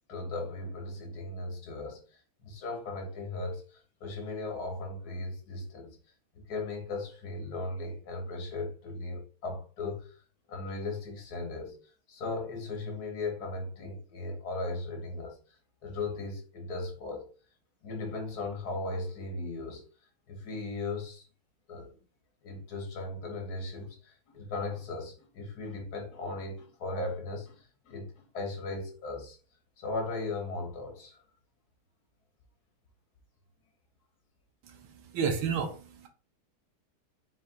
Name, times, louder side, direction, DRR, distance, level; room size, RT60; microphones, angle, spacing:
voice 1, 0.1-2.0 2.4-6.0 6.3-10.2 10.5-11.8 12.1-15.4 15.8-17.3 17.8-19.9 20.3-21.2 21.7-22.0 22.4-29.4 29.8-31.2, left 2 dB, 50° left, 1.5 m, -37 dB
voice 2, 34.6-36.1, right 6 dB, 75° right, 1.4 m, -32 dB
4.2 x 4.1 x 2.5 m
omnidirectional pair, 2.4 m